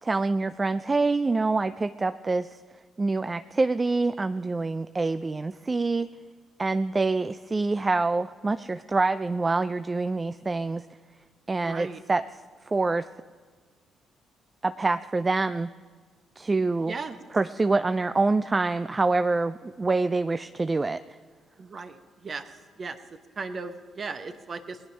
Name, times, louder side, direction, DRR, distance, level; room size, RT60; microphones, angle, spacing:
voice 1, 0.0-2.6 3.0-6.1 6.6-10.9 11.5-12.2 12.7-13.1 14.6-15.7 16.4-16.9 17.3-21.0, right 3 dB, 30° right, 13 dB, 0.4 m, -26 dB
voice 2, 11.6-12.0 16.9-17.2 21.6-22.5 22.8-24.8, right 4 dB, 45° right, 9 dB, 1.1 m, -37 dB
20.0 x 9.3 x 5.3 m, 1.5 s
hypercardioid pair, 45°, 0 cm